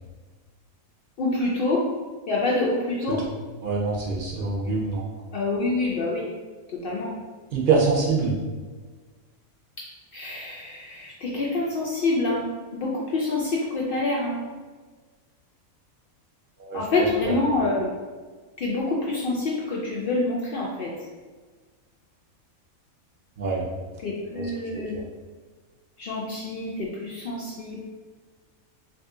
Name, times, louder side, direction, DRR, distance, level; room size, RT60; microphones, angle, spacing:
voice 1, 1.2-1.8 2.3-3.2 4.6-4.7 5.3-6.3 6.8-7.1 10.1-12.5 12.7-14.4 16.7-17.9 18.6-20.9 24.0-24.9 26.0-27.8, left 2 dB, 85° left, -4 dB, 0.4 m, -26 dB
voice 2, 3.6-5.0 7.5-8.3 16.7-16.8 17.2-17.3 23.4-23.6 24.3-24.5 24.7-25.0, right 4 dB, 55° right, -3 dB, 0.6 m, -24 dB
2.7 x 2.5 x 3.6 m, 1.4 s
omnidirectional pair, 1.5 m